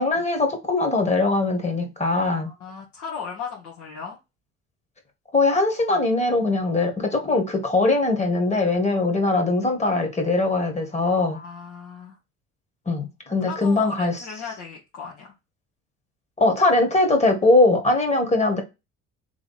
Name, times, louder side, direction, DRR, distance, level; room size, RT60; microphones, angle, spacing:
voice 1, 0.0-2.5 5.3-11.4 12.9-14.3 16.4-18.6, left 2 dB, 20° left, 1.6 m, -21 dB
voice 2, 2.3-4.2 7.2-7.4 8.9-9.0 11.2-12.2 13.5-15.3, left 6 dB, 65° left, 1.5 m, -37 dB
3.5 x 3.2 x 4.1 m
supercardioid pair, 80°, 32 cm